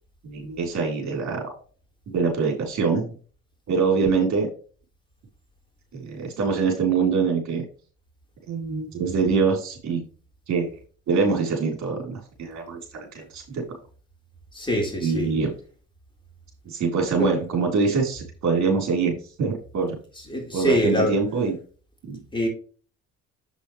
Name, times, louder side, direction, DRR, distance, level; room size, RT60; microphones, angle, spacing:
voice 1, 0.2-1.5 2.1-3.1 3.7-4.5 5.9-7.6 8.5-10.0 10.5-10.8 11.1-12.8 13.1-13.6 15.0-15.5 16.7-20.0 20.5-21.6 22.1-22.2, right 5 dB, 65° right, 3.9 m, -24 dB
voice 2, 14.5-15.3 17.2-17.3 20.3-21.1 22.3-22.5, equal, 15° left, 3.9 m, -23 dB
7.9 x 7.0 x 3.2 m
cardioid pair, 90°, 30 cm